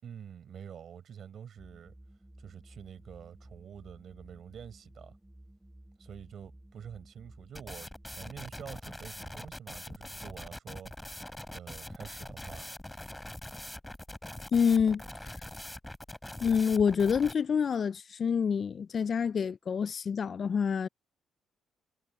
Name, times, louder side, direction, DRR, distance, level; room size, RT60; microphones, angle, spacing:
voice 1, 0.0-1.9 2.4-5.2 6.0-10.9 11.5-12.7, right 8 dB, 60° right, 5.1 m, -47 dB
sound 1, 1.6-8.8, right 1 dB, 5° right, 3.2 m, -55 dB
sound 2, 7.5-17.3, left 1 dB, 10° left, 4.9 m, -43 dB
voice 2, 14.5-15.0 16.4-20.9, left 6 dB, 50° left, 0.4 m, -27 dB
cardioid pair, 90°, 0 cm